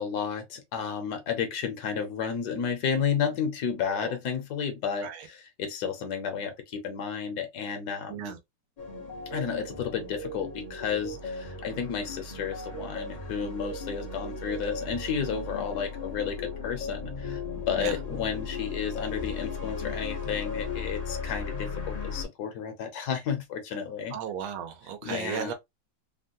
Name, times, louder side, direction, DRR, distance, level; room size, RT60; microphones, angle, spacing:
voice 1, 0.0-8.3 9.3-24.2 25.0-25.5, left 7 dB, 60° left, 1.2 m, -32 dB
sound 1, 8.8-22.2, left 4 dB, 45° left, 0.5 m, -36 dB
voice 2, 24.1-25.5, right 8 dB, 90° right, 1.6 m, -35 dB
3.6 x 2.1 x 2.6 m
omnidirectional pair, 2.2 m